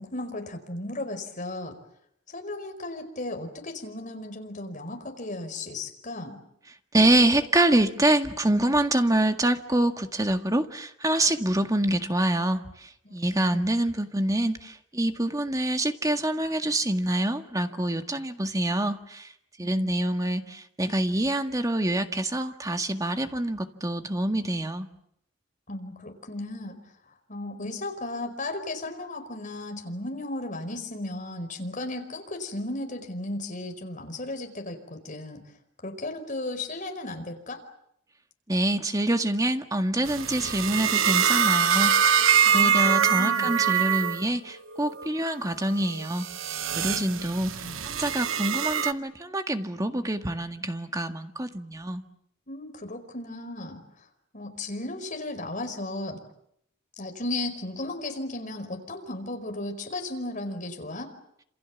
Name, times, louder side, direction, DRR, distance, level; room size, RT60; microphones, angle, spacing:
voice 1, 0.0-1.8 2.3-6.4 13.3-13.7 19.7-19.9 20.3-20.5 25.7-26.8 27.3-35.4 35.8-37.6 42.4-43.5 46.9-47.1 47.6-47.8 52.5-53.8 54.3-56.2 57.0-61.1, left 2 dB, 40° left, 6 dB, 5.0 m, -35 dB
voice 2, 6.9-12.6 13.1-19.3 19.6-24.9 38.5-42.2 42.5-46.3 46.7-52.0, right 1 dB, 15° right, 7 dB, 1.8 m, -26 dB
sound 1, 40.1-44.3 44.7-45.1 45.7-48.9, right 8 dB, 90° right, 1.3 m, -24 dB
28.0 x 27.5 x 7.3 m, 0.72 s
head